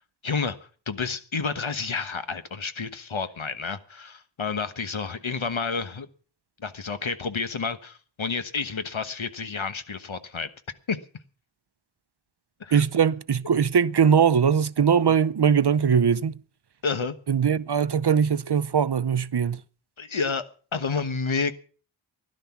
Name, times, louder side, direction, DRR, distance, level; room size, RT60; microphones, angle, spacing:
voice 1, 0.2-0.6 0.9-6.1 6.6-10.5 10.9-11.0 12.6-12.8 16.8-17.1 20.0-20.5 20.7-21.5, left 5 dB, 75° left, 1.3 m, -30 dB
voice 2, 12.7-16.4 17.3-19.6, right 7 dB, 55° right, 0.7 m, -21 dB
16.5 x 11.5 x 5.9 m
wide cardioid pair, 55°, 47 cm